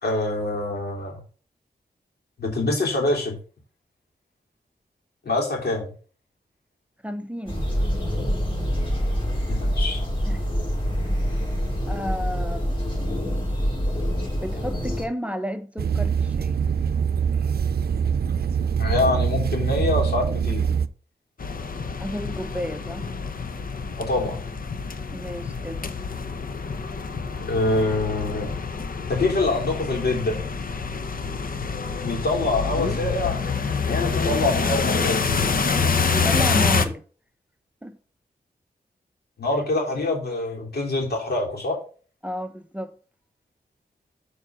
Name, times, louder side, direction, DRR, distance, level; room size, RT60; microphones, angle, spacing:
voice 1, 0.0-1.2 2.4-3.4 5.2-5.9 9.5-10.0 18.8-20.8 24.0-24.4 27.4-28.6 29.1-30.4 32.0-33.4 33.9-35.2 39.4-41.8, left 2 dB, 80° left, 3.3 m, -25 dB
voice 2, 7.0-7.7 10.3-10.5 11.0-11.2 11.9-13.1 14.2-16.6 22.0-23.1 25.1-25.8 36.1-37.0 37.8-38.0 42.2-42.9, equal, 10° right, 0.8 m, -32 dB
sound 1, 7.5-15.1, equal, 30° left, 4.3 m, -25 dB
sound 2, 15.8-20.9, right 7 dB, 70° right, 0.6 m, -24 dB
sound 3, 21.4-36.9, left 5 dB, 60° left, 0.9 m, -26 dB
7.2 x 4.7 x 6.3 m
wide cardioid pair, 95°, 16 cm